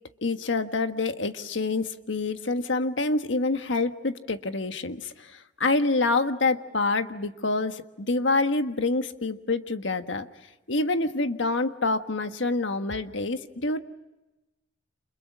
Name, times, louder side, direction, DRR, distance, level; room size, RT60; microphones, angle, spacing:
voice 1, 0.2-10.3 10.7-13.8, left 3 dB, 90° left, 8 dB, 1.5 m, -27 dB
29.5 x 28.5 x 6.2 m, 1.0 s
head